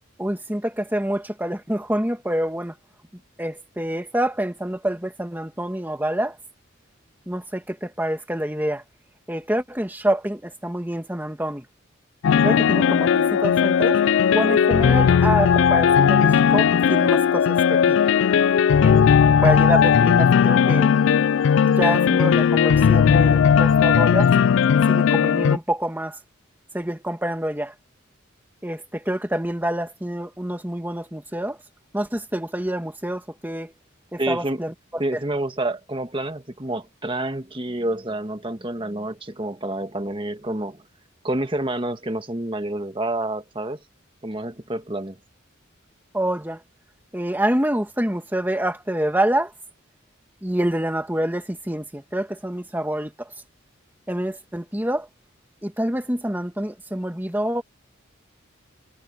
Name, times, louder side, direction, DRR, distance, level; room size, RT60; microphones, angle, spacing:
voice 1, 0.2-2.7 3.4-6.4 7.3-8.8 9.3-11.6 12.4-14.0 14.3-18.0 18.8-20.9 21.6-24.3 24.9-26.2 26.7-27.7 28.6-31.6 31.9-33.7 34.1-35.2 46.1-46.6 47.1-49.5 50.4-53.3 54.1-55.1 55.6-57.6, right 1 dB, 10° right, 1.9 m, -27 dB
sound 1, 12.2-25.6, left 7 dB, 65° left, 0.3 m, -17 dB
voice 2, 34.2-34.6 35.0-40.8 41.2-43.8 44.2-45.2, right 1 dB, 25° right, 1.6 m, -28 dB
head